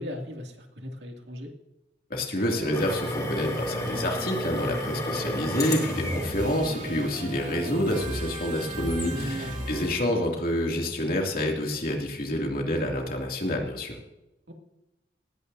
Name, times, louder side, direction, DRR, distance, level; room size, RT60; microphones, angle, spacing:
voice 1, 0.0-1.5 6.0-6.2 9.1-9.7 14.5-14.6, equal, 75° right, 2 dB, 2.4 m, -37 dB
voice 2, 2.1-14.0, left 1 dB, 55° left, 1 dB, 2.6 m, -28 dB
sound 1, 2.4-10.2, right 1 dB, 50° right, 2.8 m, -37 dB
sound 2, 2.7-9.9, left 1 dB, 20° left, 2.9 m, -34 dB
19.0 x 16.0 x 2.7 m, 0.95 s
head